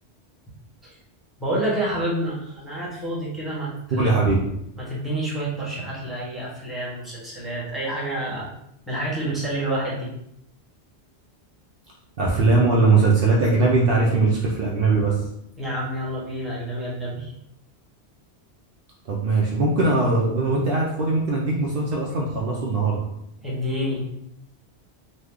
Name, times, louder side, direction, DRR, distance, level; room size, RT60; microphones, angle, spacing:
voice 1, 1.4-4.1 4.8-8.5 8.9-10.1 15.6-17.3 23.4-24.0, right 1 dB, ahead, -8 dB, 1.0 m, -28 dB
voice 2, 3.9-4.5 12.2-15.2 19.1-23.1, right 3 dB, 65° right, -3 dB, 0.7 m, -20 dB
3.1 x 2.1 x 3.5 m, 0.78 s
omnidirectional pair, 1.1 m